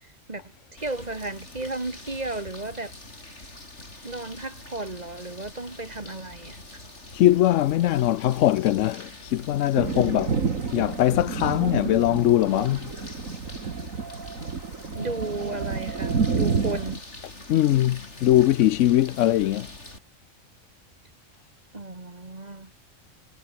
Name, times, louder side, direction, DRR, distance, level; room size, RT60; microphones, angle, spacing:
voice 1, 0.0-2.9 4.0-6.6 14.9-17.0 21.7-22.7, right 2 dB, 30° right, 2.3 m, -34 dB
sound 1, 0.8-20.0, left 2 dB, 55° left, 5.7 m, -45 dB
voice 2, 7.1-10.4 10.7-12.9 17.5-19.7, left 13 dB, 70° left, 0.9 m, -21 dB
Thunder, 9.7-17.0, right 5 dB, 80° right, 2.4 m, -29 dB
omnidirectional pair, 1.4 m